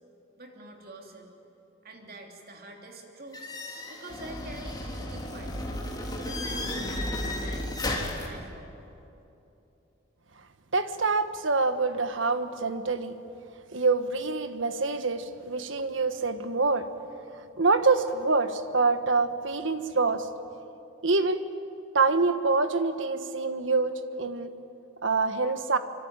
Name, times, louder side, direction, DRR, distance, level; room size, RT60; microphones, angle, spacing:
voice 1, 0.4-1.3 1.8-3.4 3.9-5.8 6.2-8.7, right 1 dB, 50° right, 2 dB, 3.1 m, -45 dB
sound 1, 3.3-8.3, left 1 dB, 20° left, 3.5 m, -33 dB
voice 2, 10.7-13.1 13.7-16.9 17.6-20.3 21.0-21.4 21.9-24.5 25.0-25.8, right 3 dB, 65° right, 9 dB, 1.4 m, -26 dB
25.5 x 25.0 x 9.0 m, 2.9 s
head